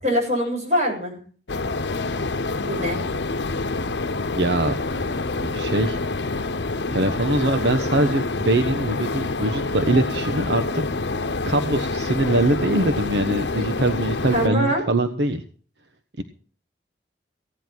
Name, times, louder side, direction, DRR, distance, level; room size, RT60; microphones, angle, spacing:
voice 1, 0.0-1.2 2.6-3.0 14.3-14.8, equal, 40° right, 0 dB, 7.0 m, -23 dB
sound 1, 1.5-14.5, left 3 dB, 80° left, 0.9 m, -27 dB
voice 2, 4.3-5.0 5.4-6.0 6.9-10.8 11.4-15.4 16.2-16.3, right 2 dB, 75° right, 8 dB, 1.2 m, -23 dB
16.5 x 11.0 x 4.6 m, 0.42 s
head